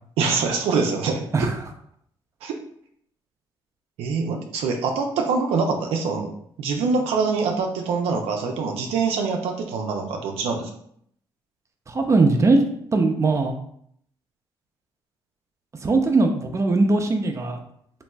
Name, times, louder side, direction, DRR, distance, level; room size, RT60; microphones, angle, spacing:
voice 1, 0.2-1.2 2.4-2.5 4.0-6.3 6.6-10.7, right 4 dB, 85° right, 3 dB, 0.4 m, -24 dB
voice 2, 11.9-13.5 15.8-17.6, right 3 dB, 30° right, 4 dB, 0.5 m, -20 dB
2.9 x 2.6 x 2.2 m, 0.67 s
supercardioid pair, 60°, 10 cm